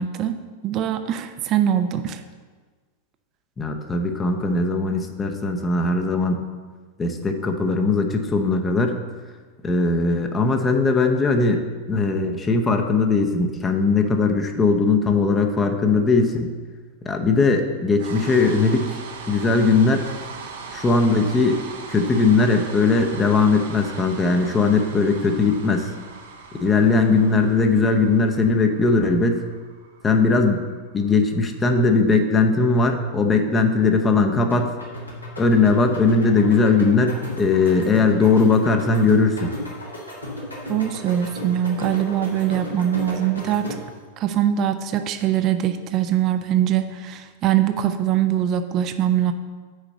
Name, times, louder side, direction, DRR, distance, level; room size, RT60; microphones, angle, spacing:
voice 1, 0.0-2.2 40.7-43.7 44.2-49.3, right 10 dB, 35° right, 9 dB, 0.6 m, -22 dB
voice 2, 3.6-6.4 7.0-9.0 9.6-16.5 17.1-19.0 19.3-20.1 20.7-21.6 21.9-25.9 26.6-29.4 30.0-30.6 30.9-34.7 35.4-39.5, left 3 dB, 20° left, 4 dB, 0.8 m, -19 dB
sound 1, 18.0-32.1, right 4 dB, 60° right, 0.9 m, -40 dB
sound 2, 34.5-44.0, left 1 dB, 85° left, 1.8 m, -35 dB
6.5 x 5.0 x 6.8 m, 1.4 s
figure-of-eight pair, 90°, 0 cm